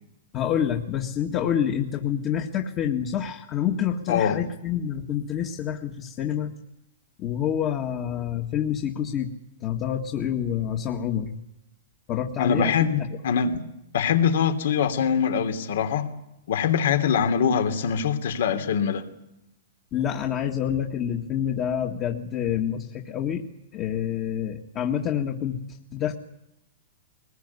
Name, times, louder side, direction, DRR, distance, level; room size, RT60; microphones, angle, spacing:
voice 1, 0.3-6.5 7.2-9.3 9.6-11.4 12.1-13.2 19.9-23.4 23.7-25.6 25.9-26.1, left 9 dB, 30° left, 1.8 m, -27 dB
voice 2, 4.1-4.4 12.4-13.6 13.9-16.1 16.5-19.1, left 7 dB, 70° left, 2.9 m, -23 dB
22.5 x 21.0 x 9.7 m
hypercardioid pair, 150°, 0 cm